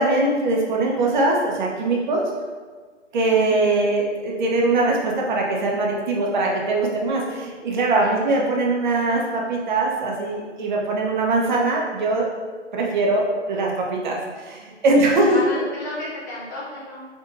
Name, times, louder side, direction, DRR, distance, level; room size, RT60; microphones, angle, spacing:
voice 1, 0.0-2.3 3.1-12.3 12.7-15.6, right 2 dB, 40° right, -1 dB, 0.9 m, -21 dB
voice 2, 3.3-3.7 8.0-8.3 15.2-17.1, left 2 dB, 15° left, -9 dB, 0.4 m, -33 dB
sound 1, 7.2-7.5 11.4-13.4, left 1 dB, 45° left, 0.9 m, -41 dB
5.3 x 3.5 x 2.6 m, 1.5 s
figure-of-eight pair, 135°, 37 cm